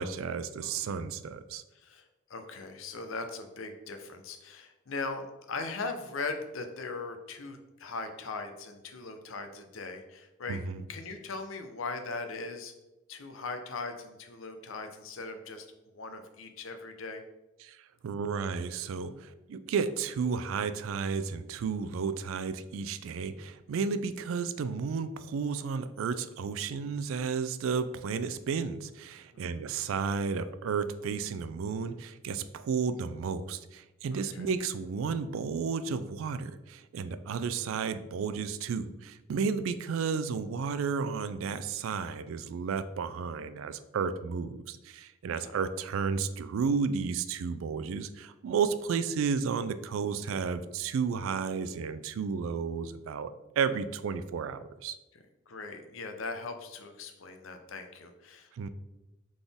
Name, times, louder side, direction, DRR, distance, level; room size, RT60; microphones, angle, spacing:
voice 1, 0.0-1.6 10.5-10.8 17.6-17.8 18.0-55.0 58.5-58.7, right 5 dB, 75° right, 13 dB, 0.3 m, -32 dB
voice 2, 1.7-10.6 10.9-12.7 13.1-15.7 15.9-17.2 29.3-29.6 34.1-34.5 45.4-45.5 55.1-58.7, left 3 dB, 70° left, 6 dB, 0.6 m, -40 dB
4.0 x 3.7 x 3.4 m, 1.0 s
head